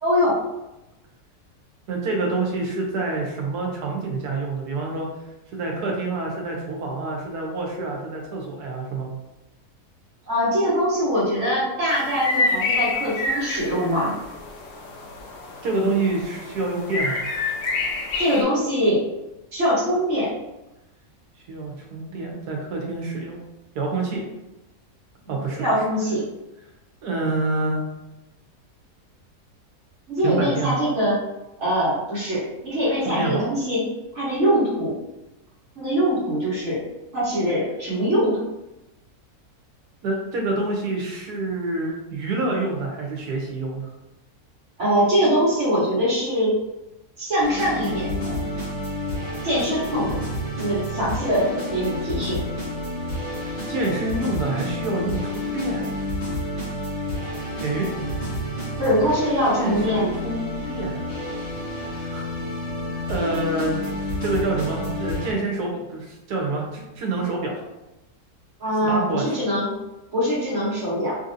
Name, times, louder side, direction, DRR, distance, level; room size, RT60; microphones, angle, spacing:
voice 1, 0.0-0.4 10.2-14.2 18.2-19.0 19.5-20.3 25.6-26.2 30.1-31.1 31.6-33.8 34.1-35.0 35.8-36.8 37.1-38.4 44.8-46.5 47.2-48.5 49.4-50.2 50.6-52.4 58.8-60.1 68.6-69.7 70.1-71.2, equal, 50° right, -9 dB, 1.4 m, -22 dB
voice 2, 1.9-5.1 5.5-9.1 15.6-17.2 21.5-23.4 23.7-24.2 25.3-25.6 27.0-27.8 30.2-30.8 33.0-33.4 40.0-43.8 53.7-55.9 57.6-57.9 59.5-61.0 61.8-62.2 63.1-63.8 64.2-67.6 68.8-69.3, right 2 dB, 85° right, 0 dB, 1.3 m, -27 dB
sound 1, 11.9-18.4, left 3 dB, 65° left, 0.9 m, -28 dB
sound 2, 47.4-65.3, left 1 dB, 25° left, 1.2 m, -30 dB
3.4 x 2.7 x 2.5 m, 0.96 s
omnidirectional pair, 1.6 m